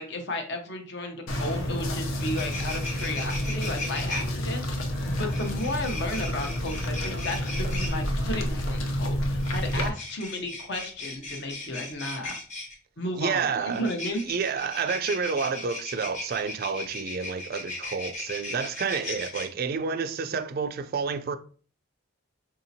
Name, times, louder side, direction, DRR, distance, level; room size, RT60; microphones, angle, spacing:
voice 1, 0.0-4.6 5.1-12.4 13.0-14.2, left 1 dB, 55° left, 0.8 m, -34 dB
sound 1, 1.3-9.9, equal, 85° left, 0.7 m, -29 dB
sound 2, 2.2-4.2 5.3-7.9 9.3-12.7 13.7-19.5, left 2 dB, 35° left, 1.0 m, -37 dB
voice 2, 13.2-13.9 14.2-21.4, right 5 dB, 45° right, 0.3 m, -29 dB
4.9 x 2.8 x 2.7 m
head